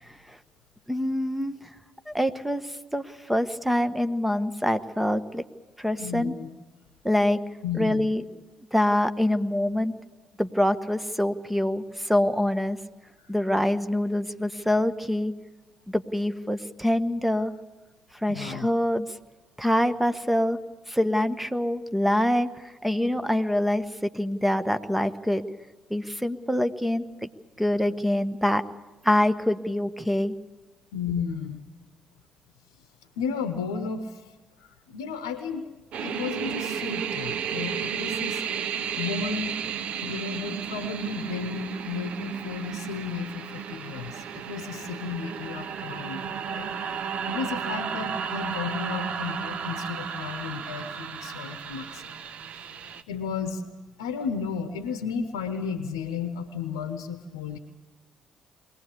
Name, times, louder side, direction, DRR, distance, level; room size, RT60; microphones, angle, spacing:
voice 1, 0.9-1.6 2.1-2.6 2.9-5.4 5.8-6.3 7.0-7.4 7.7-8.2 8.7-9.9 10.4-12.8 13.3-15.3 15.9-17.5 18.2-19.1 19.6-20.6 20.9-22.5 22.8-25.4 25.9-27.1 27.6-28.7 29.0-30.3, left 1 dB, 5° right, 10 dB, 1.3 m, -25 dB
voice 2, 6.0-6.5 7.6-8.1 13.2-13.3 18.3-18.7 30.9-31.6 33.2-34.2 34.6-35.7 36.0-38.4 38.7-39.6 40.0-52.2 53.1-53.6 54.0-57.6, left 6 dB, 80° left, 8 dB, 0.9 m, -33 dB
sound 1, 35.9-53.0, right 7 dB, 60° right, 1.0 m, -33 dB
22.5 x 17.5 x 8.4 m, 1.2 s
hypercardioid pair, 45°, 2 cm